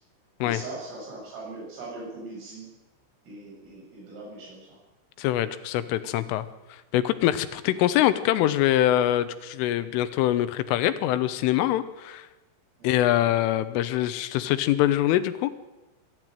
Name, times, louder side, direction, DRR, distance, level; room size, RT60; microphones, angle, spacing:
voice 1, 0.4-2.7 3.2-4.8 12.8-13.1, right 2 dB, 90° right, -3 dB, 10.0 m, -40 dB
voice 2, 5.2-12.3 12.8-15.5, left 13 dB, 85° left, 13 dB, 3.6 m, -24 dB
23.5 x 13.5 x 9.1 m, 1.0 s
omnidirectional pair, 5.7 m